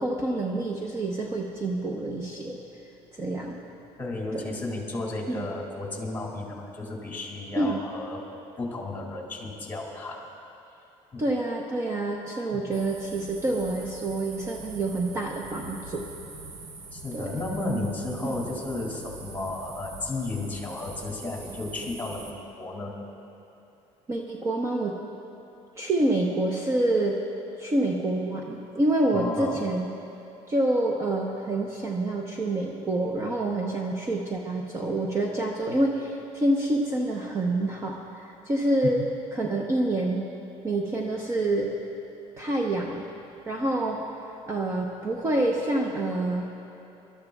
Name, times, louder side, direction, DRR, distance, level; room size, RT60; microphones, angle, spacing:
voice 1, 0.0-2.6 3.2-3.6 4.3-4.4 5.3-5.5 7.6-7.8 11.2-16.1 17.1-17.4 18.2-18.3 24.1-25.0 25.8-27.2 27.6-29.9 30.5-39.0 39.3-40.2 40.6-41.7 42.4-43.0 43.5-44.0 44.5-46.4, right 2 dB, 25° right, -1 dB, 0.8 m, -27 dB
voice 2, 4.0-8.2 8.6-10.2 11.1-11.2 12.5-12.6 16.9-22.3 22.6-23.0 29.1-29.6, left 2 dB, 15° left, -2 dB, 2.4 m, -33 dB
sound 1, 12.7-22.3, right 3 dB, 70° right, 1.3 m, -43 dB
25.5 x 13.0 x 2.4 m, 2.8 s
cardioid pair, 150°, 12 cm